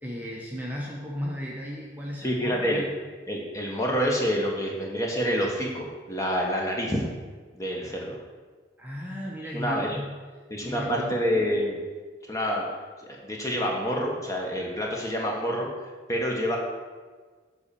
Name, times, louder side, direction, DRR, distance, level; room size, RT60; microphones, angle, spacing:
voice 1, 0.0-2.9 8.8-10.1 10.6-11.2, equal, 10° right, -3 dB, 0.8 m, -35 dB
voice 2, 2.2-2.8 3.3-7.0 7.5-8.2 9.5-10.0 10.5-11.8 12.3-12.6 13.0-15.7 16.1-16.6, equal, 15° left, -1 dB, 1.2 m, -27 dB
7.9 x 4.2 x 6.9 m, 1.5 s
head